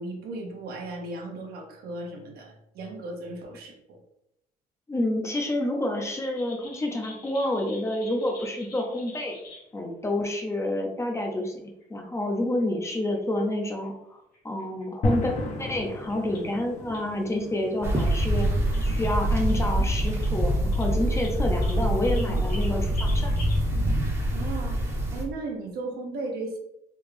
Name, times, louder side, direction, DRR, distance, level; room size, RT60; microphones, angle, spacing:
voice 1, 0.0-4.0 24.3-24.8 25.1-26.6, right 2 dB, 65° right, 2 dB, 0.9 m, -36 dB
voice 2, 4.9-9.4 9.7-14.2 14.4-15.3 15.6-18.5 18.8-23.3, left 1 dB, 15° left, 2 dB, 0.6 m, -28 dB
sound 1, 6.1-9.7 10.9-11.0 11.4-11.5 11.8-11.9 12.2-12.3 12.6-12.7 13.1-13.9 14.3-14.8 15.2-15.5 16.1-16.5 16.9-17.1 17.9-18.1 18.7-18.8 19.3-19.6 20.0-20.3 20.7-23.6, left 2 dB, 65° left, 1.5 m, -46 dB
sound 2, 15.0-25.2, left 2 dB, 45° left, 0.8 m, -37 dB
sound 3, 17.8-25.2, right 1 dB, 15° right, 0.8 m, -25 dB
3.5 x 2.3 x 3.3 m, 0.81 s
cardioid pair, 110°, 17 cm